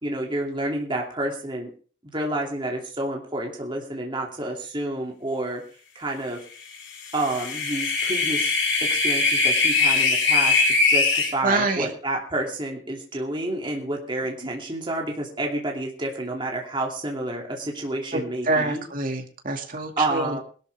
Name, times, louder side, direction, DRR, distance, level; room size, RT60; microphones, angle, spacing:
voice 1, 0.0-1.7 2.0-5.6 5.9-6.4 7.1-18.8 20.0-20.4, right 1 dB, 25° right, -1 dB, 2.7 m, -29 dB
sound 1, 7.0-11.3, left 3 dB, 60° left, 3.4 m, -21 dB
voice 2, 11.4-11.9 18.5-20.4, right 2 dB, 45° right, 4 dB, 2.3 m, -26 dB
20.5 x 12.5 x 3.5 m, 0.41 s
head